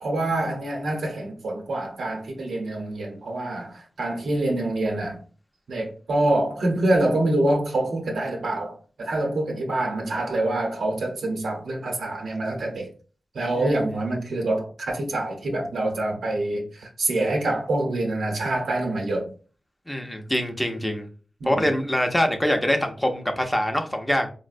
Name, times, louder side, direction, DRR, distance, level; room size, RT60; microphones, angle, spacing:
voice 1, 0.0-5.2 5.7-12.9 13.3-19.3 21.4-21.5, right 2 dB, 90° right, 0.7 m, -26 dB
voice 2, 19.9-21.1 21.4-24.3, left 1 dB, 10° left, 0.5 m, -24 dB
3.9 x 2.0 x 2.5 m
wide cardioid pair, 95°, 0 cm